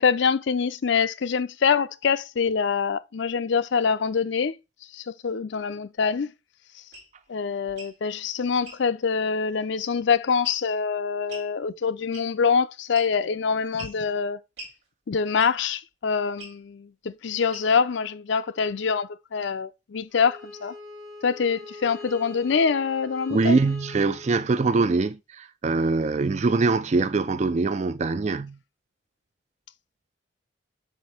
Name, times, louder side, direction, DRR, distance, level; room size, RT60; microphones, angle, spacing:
voice 1, 0.0-4.5 4.9-6.3 7.3-14.4 15.1-20.7 21.2-23.6, left 6 dB, 65° left, 0.4 m, -25 dB
sound 1, 6.9-7.1 7.7-8.0 8.6-8.8 10.4-10.8 11.3-11.5 12.1-12.5 12.9-13.3 13.8-14.0 14.6-14.8 15.4-15.7 16.4-16.6 17.5-17.9, right 1 dB, 55° right, 3.6 m, -43 dB
Bowed string instrument, 20.1-25.1, left 2 dB, 75° right, 3.4 m, -43 dB
voice 2, 23.3-28.6, right 3 dB, 35° right, 0.3 m, -23 dB
7.4 x 2.6 x 5.6 m
head